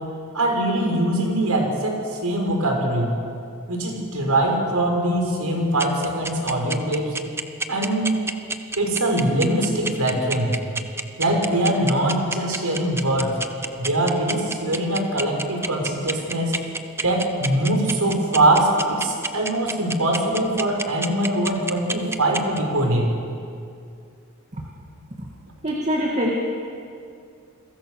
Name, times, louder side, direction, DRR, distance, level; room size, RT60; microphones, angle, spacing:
voice 1, 0.3-3.1 3.7-7.1 7.7-8.1 8.8-10.5 11.2-13.3 13.8-16.5 17.0-23.1, right 1 dB, 85° right, 1 dB, 5.9 m, -22 dB
sound 1, 5.8-22.6, right 3 dB, 10° right, 0.9 m, -27 dB
voice 2, 25.6-26.3, equal, 30° right, -1 dB, 2.3 m, -24 dB
29.5 x 22.5 x 6.7 m, 2.4 s
head